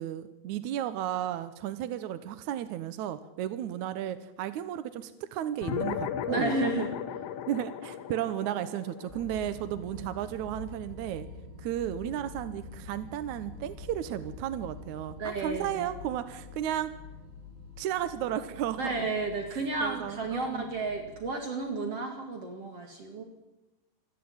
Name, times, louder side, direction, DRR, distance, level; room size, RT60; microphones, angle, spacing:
voice 1, 0.0-6.5 7.5-11.3 11.6-16.9 17.8-19.0 19.8-20.7, right 11 dB, 70° right, 11 dB, 1.9 m, -34 dB
sound 1, 5.6-10.4, left 9 dB, 90° left, 1.4 m, -36 dB
voice 2, 6.3-6.9 15.2-15.9 18.8-23.2, right 3 dB, 45° right, 3 dB, 2.7 m, -32 dB
sound 2, 9.1-21.3, left 3 dB, 25° right, 8.0 m, -46 dB
27.0 x 11.0 x 8.8 m, 1.0 s
omnidirectional pair, 4.2 m